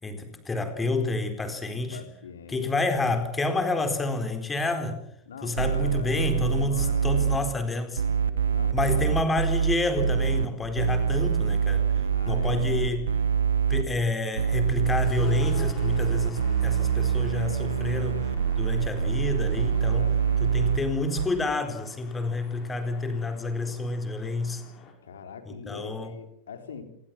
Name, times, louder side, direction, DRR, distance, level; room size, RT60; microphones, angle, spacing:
voice 1, 0.0-2.0 2.5-5.0 5.4-8.0 8.7-11.9 12.3-13.1 13.7-18.3 18.6-20.1 20.4-24.6 25.5-26.1, left 2 dB, 15° left, 7 dB, 4.3 m, -29 dB
voice 2, 1.7-3.1 5.3-7.4 8.5-9.4 12.1-12.7 18.8-20.4 25.0-26.8, left 6 dB, 65° left, 7 dB, 4.0 m, -43 dB
sound 1, 5.6-7.4 8.0-10.5 10.8-13.8 14.4-20.8 21.2-21.3, right 7 dB, 70° right, 2.2 m, -25 dB
sound 2, 14.9-24.9, left 7 dB, 30° left, 6.3 m, -47 dB
27.0 x 21.5 x 7.4 m, 0.72 s
figure-of-eight pair, 90°, 0 cm